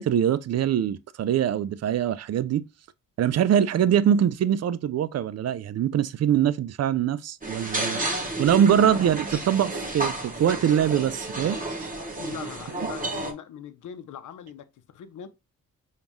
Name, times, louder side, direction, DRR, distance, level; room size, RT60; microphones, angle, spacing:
voice 1, 0.0-2.6 3.2-8.0 8.4-11.6, right 9 dB, 50° right, 0.5 m, -23 dB
sound 1, 7.4-13.3, right 2 dB, 25° right, 1.2 m, -31 dB
voice 2, 8.6-9.0 12.2-15.3, left 9 dB, 65° left, 0.7 m, -40 dB
5.1 x 2.4 x 3.0 m
supercardioid pair, 50°, 34 cm